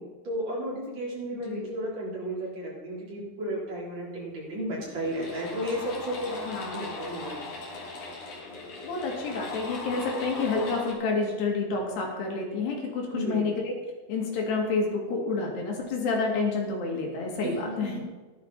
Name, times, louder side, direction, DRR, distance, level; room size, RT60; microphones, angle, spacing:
voice 1, 0.0-7.5 13.1-13.6 17.4-18.0, equal, 40° right, -5 dB, 4.9 m, -33 dB
sound 1, 4.2-4.3 4.7-10.9, left 3 dB, 50° left, 3.9 m, -39 dB
voice 2, 6.5-6.8 8.8-13.5 14.1-17.9, left 4 dB, 80° left, -1 dB, 4.7 m, -29 dB
16.0 x 11.5 x 4.2 m, 1.3 s
omnidirectional pair, 4.7 m